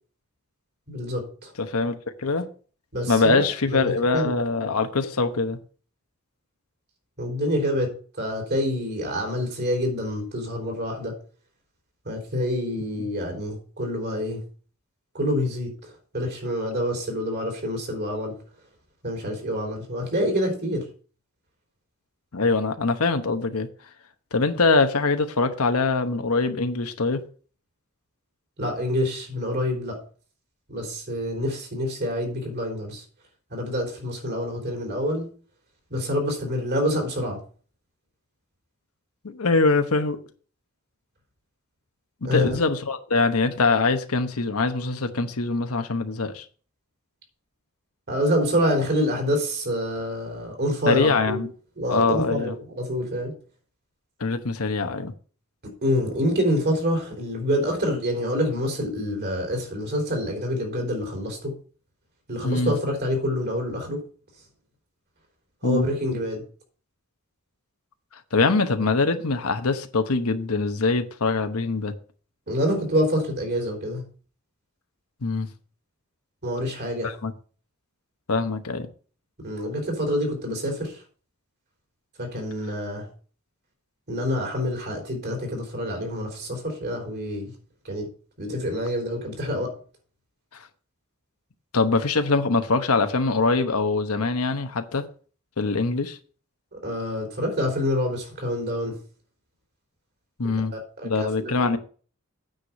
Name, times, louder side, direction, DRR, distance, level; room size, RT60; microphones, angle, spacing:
voice 1, 0.9-1.5 2.9-4.3 7.2-7.9 8.2-11.1 12.1-14.4 15.1-15.7 16.1-18.3 19.0-20.9 28.6-30.0 30.7-33.0 33.5-35.3 35.9-37.4 42.2-42.5 48.1-51.4 51.8-53.3 55.8-61.5 62.3-64.0 65.6-66.4 72.5-74.0 76.4-77.1 79.4-81.0 82.2-83.1 84.1-87.5 87.9-88.1 88.4-89.7 96.8-98.9 100.7-101.8, equal, 50° right, 3.6 m, -27 dB
voice 2, 1.6-2.5 3.1-5.6 22.3-23.7 24.3-27.2 39.2-40.2 42.2-46.4 50.9-51.5 51.9-52.5 54.2-55.1 62.4-62.7 65.6-65.9 68.3-71.9 75.2-75.5 77.0-77.3 78.3-78.9 91.7-95.0 95.6-96.2 100.4-100.7 101.0-101.8, left 3 dB, 90° left, 1.0 m, -23 dB
9.0 x 4.9 x 7.3 m
head